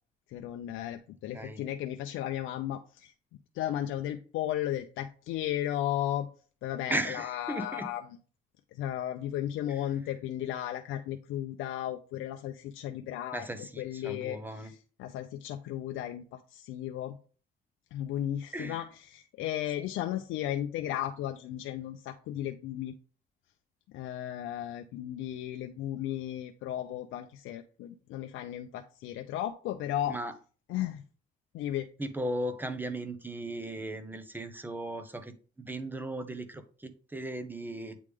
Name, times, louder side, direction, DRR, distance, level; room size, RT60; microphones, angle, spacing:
voice 1, 0.3-3.1 3.5-6.3 6.6-8.0 8.8-17.2 17.9-22.9 23.9-30.2 30.7-31.0 31.5-31.9, left 12 dB, 90° left, 6 dB, 0.5 m, -35 dB
voice 2, 6.9-7.9 9.7-9.8 13.3-14.7 18.5-18.8 30.1-30.3 32.0-38.0, right 1 dB, 10° right, 9 dB, 0.9 m, -37 dB
8.5 x 3.2 x 3.5 m, 0.39 s
cardioid pair, 90°, 20 cm